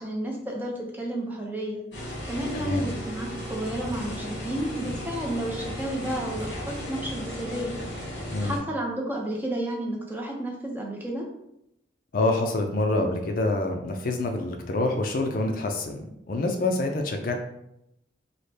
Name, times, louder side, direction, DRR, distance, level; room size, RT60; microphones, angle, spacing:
voice 1, 0.0-1.8 2.2-7.7 8.4-11.3, right 1 dB, 10° right, -1 dB, 0.5 m, -31 dB
sound 1, 1.9-8.6, equal, 65° left, 1.5 m, -35 dB
voice 2, 2.5-2.9 8.3-8.5 12.1-17.3, left 2 dB, 45° left, 4 dB, 0.4 m, -26 dB
4.0 x 2.1 x 3.3 m, 0.80 s
head